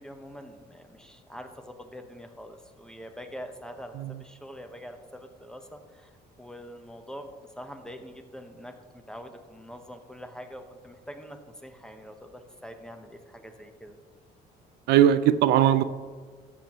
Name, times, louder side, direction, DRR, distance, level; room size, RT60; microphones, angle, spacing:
voice 1, 0.0-6.1 6.4-13.9, equal, 5° left, 6 dB, 1.0 m, -44 dB
voice 2, 14.9-15.8, right 10 dB, 80° right, 13 dB, 0.5 m, -19 dB
13.5 x 7.7 x 3.0 m, 1.6 s
cardioid pair, 110°, 17 cm